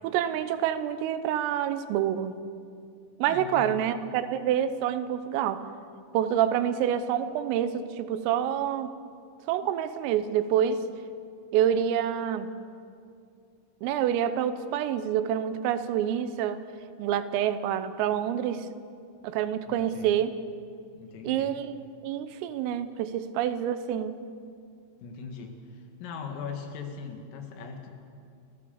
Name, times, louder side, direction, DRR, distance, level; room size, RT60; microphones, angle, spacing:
voice 1, 0.0-2.4 3.2-5.6 6.1-8.9 9.5-10.8 11.5-12.5 13.8-16.6 17.0-18.7 19.2-20.3 21.2-24.2, right 10 dB, 80° right, 12 dB, 3.5 m, -27 dB
voice 2, 3.3-3.8 19.7-20.2 20.9-21.6 25.0-27.9, left 5 dB, 80° left, 4 dB, 4.6 m, -40 dB
30.0 x 14.5 x 7.1 m, 2.4 s
omnidirectional pair, 6.0 m